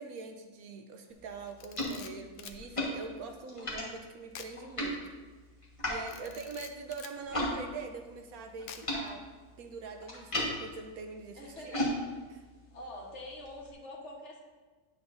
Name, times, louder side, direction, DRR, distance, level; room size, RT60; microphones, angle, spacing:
voice 1, 0.0-5.0 5.9-9.2 9.6-11.8 12.3-12.4, right 4 dB, 70° right, 5 dB, 1.0 m, -43 dB
sound 1, 1.1-7.6 7.8-13.7, left 1 dB, 20° left, 1.3 m, -38 dB
Camera, 1.5-2.6 4.3-4.6 4.9-5.1 6.1-7.2 8.7-9.1, left 8 dB, 65° left, 0.7 m, -48 dB
voice 2, 6.0-6.5 11.3-12.3 12.7-14.4, left 1 dB, 50° left, -2 dB, 1.4 m, -46 dB
10.0 x 7.0 x 2.6 m, 1.3 s
omnidirectional pair, 1.7 m